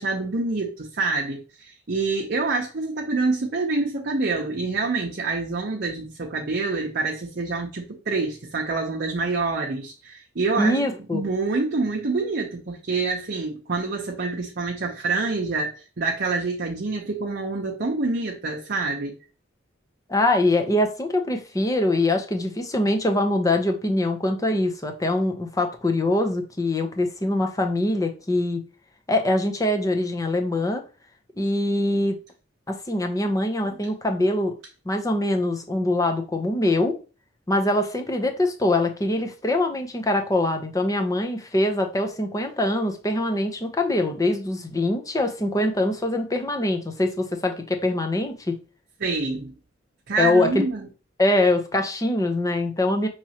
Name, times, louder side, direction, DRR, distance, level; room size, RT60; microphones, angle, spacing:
voice 1, 0.0-10.9 11.1-19.1 49.0-49.5 50.1-50.9, right 3 dB, 55° right, 0.7 m, -26 dB
voice 2, 10.6-11.2 20.1-28.6 29.1-30.8 31.4-32.1 32.7-34.5 34.9-37.0 37.5-48.5 50.2-50.6 51.2-53.1, left 1 dB, 20° left, 0.7 m, -23 dB
5.9 x 3.1 x 2.8 m
head